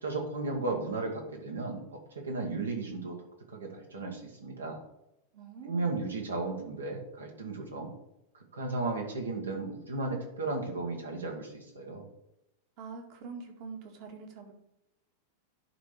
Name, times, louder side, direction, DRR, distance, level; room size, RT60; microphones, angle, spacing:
voice 1, 0.0-3.2 3.5-4.8 5.7-7.9 8.3-12.0, right 3 dB, 70° right, 2 dB, 1.9 m, -35 dB
voice 2, 5.3-6.0 12.8-14.5, right 5 dB, 45° right, 3 dB, 1.7 m, -44 dB
11.0 x 3.7 x 4.7 m, 0.87 s
figure-of-eight pair, 90°, 0 cm